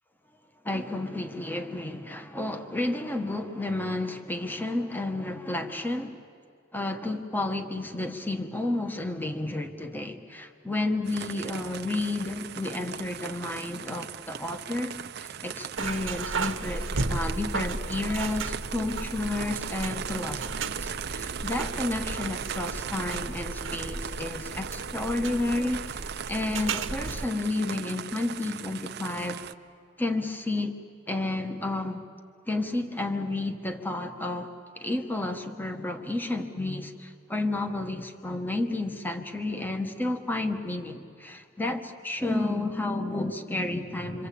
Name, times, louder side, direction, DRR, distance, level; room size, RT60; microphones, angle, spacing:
voice 1, 0.6-6.2 6.7-29.4 30.0-30.7 31.1-32.0 32.5-44.3, left 2 dB, 10° left, 6 dB, 1.2 m, -31 dB
sound 1, 11.1-29.5, right 8 dB, 55° right, 0.6 m, -38 dB
sound 2, 15.8-27.3, right 3 dB, 75° right, 1.1 m, -34 dB
27.0 x 25.0 x 8.5 m, 2.1 s
head